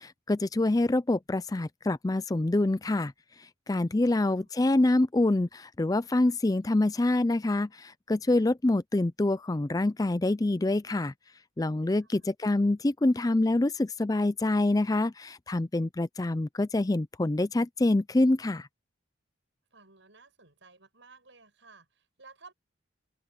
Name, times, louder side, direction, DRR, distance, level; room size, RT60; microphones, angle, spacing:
voice 1, 0.0-3.1 3.4-11.1 11.6-18.7, left 2 dB, 20° left, 0.4 m, -26 dB
voice 2, 4.0-4.5 12.0-12.3 19.7-22.5, right 4 dB, 70° right, 7.1 m, -55 dB
open air
head